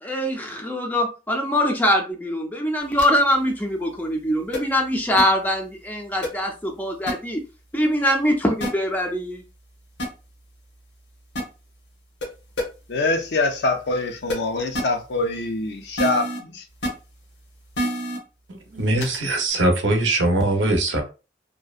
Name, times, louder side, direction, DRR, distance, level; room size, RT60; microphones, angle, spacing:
voice 1, 0.0-7.4 7.7-9.4, equal, 10° left, 0.4 m, -23 dB
sound 1, 3.0-3.2 4.5-4.6 5.2-5.3 6.2-6.3 7.1-7.2 8.6-8.7 10.0-10.1 11.4-11.5 12.2-12.3 12.6-12.7 14.3-14.4 14.7-14.8 16.0-16.4 16.8-16.9 17.8-18.2 19.0-19.2, equal, 80° left, 0.9 m, -25 dB
voice 2, 12.9-16.6, left 2 dB, 65° left, 0.5 m, -24 dB
voice 3, 18.5-21.0, right 2 dB, 85° right, 0.6 m, -21 dB
2.6 x 2.1 x 2.3 m
head